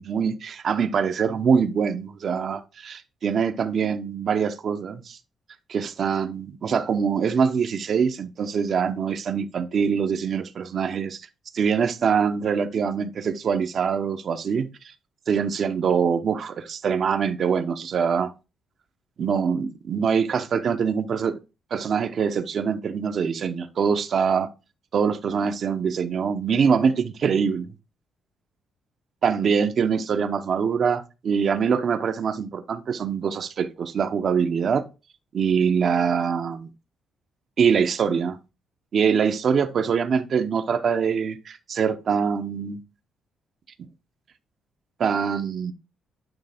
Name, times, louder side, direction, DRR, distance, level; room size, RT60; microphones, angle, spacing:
voice 1, 0.0-5.2 5.7-11.2 11.5-14.9 15.3-18.3 19.2-21.4 21.7-24.5 24.9-27.7 29.2-34.9 35.3-36.7 37.6-38.4 38.9-42.8 45.0-45.7, right 6 dB, 55° right, 0.7 m, -24 dB
9.0 x 3.2 x 3.5 m
cardioid pair, 90°, 0 cm